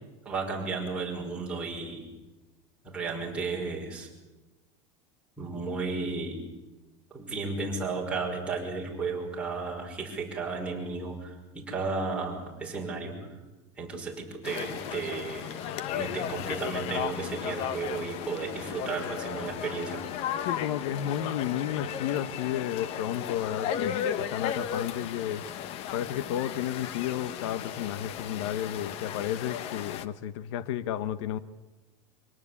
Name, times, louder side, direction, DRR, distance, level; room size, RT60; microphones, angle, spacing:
voice 1, 0.2-2.1 2.8-4.1 5.4-6.4 7.1-13.2 13.8-20.0, right 4 dB, 5° right, -2 dB, 5.6 m, -34 dB
sound 1, 14.4-30.1, left 9 dB, 40° left, 1.0 m, -35 dB
voice 2, 20.4-25.4 25.9-31.4, left 11 dB, 65° left, 14 dB, 1.1 m, -32 dB
25.0 x 18.0 x 8.6 m, 1.1 s
supercardioid pair, 160°, 16 cm